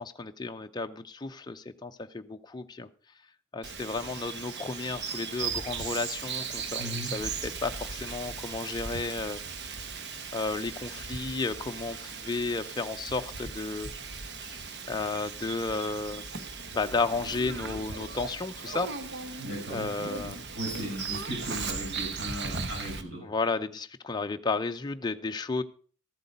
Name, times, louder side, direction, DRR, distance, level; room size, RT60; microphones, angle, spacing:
voice 1, 0.0-2.9 3.5-9.4 10.3-13.9 14.5-14.6 14.9-16.2 16.7-18.9 19.2-19.4 19.7-20.4 23.2-25.6, left 3 dB, 20° left, 7 dB, 0.5 m, -33 dB
Bird vocalization bird call bird song, 3.6-23.0, right 5 dB, 55° right, 1.1 m, -37 dB
voice 2, 6.8-7.1 19.4-23.3, equal, 75° right, -4 dB, 6.4 m, -37 dB
14.0 x 8.1 x 5.2 m, 0.43 s
head